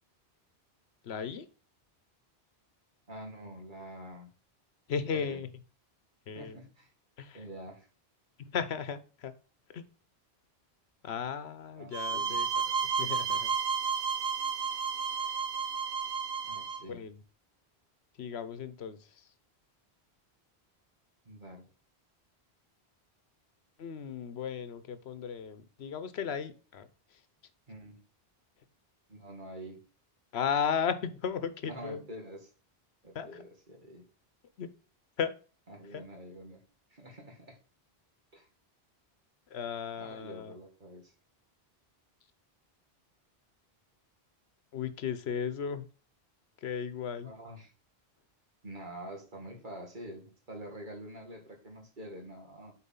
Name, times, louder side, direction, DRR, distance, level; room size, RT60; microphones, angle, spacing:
voice 1, 1.0-1.5 4.9-5.5 6.3-6.6 7.2-7.5 8.4-9.3 9.7-9.8 11.0-12.6 13.0-13.5 16.9-17.2 18.2-19.3 23.8-27.2 30.3-32.0 33.1-33.4 34.6-34.7 35.2-35.3 35.9-36.0 39.5-40.5 44.7-45.9 46.6-47.3, left 7 dB, 80° left, 12 dB, 1.0 m, -35 dB
voice 2, 3.1-4.3 5.1-5.4 6.3-6.9 7.3-7.9 11.8-12.4 16.4-17.0 21.2-21.7 27.7-28.0 29.1-29.8 31.6-32.5 33.0-34.0 35.7-36.6 36.9-37.6 38.3-38.5 40.0-41.1 47.2-47.7 48.6-52.7, right 1 dB, 50° right, 1 dB, 2.1 m, -46 dB
sound 1, 11.9-16.8, right 6 dB, 85° right, 1.1 m, -32 dB
8.3 x 4.4 x 3.7 m, 0.37 s
omnidirectional pair, 1.1 m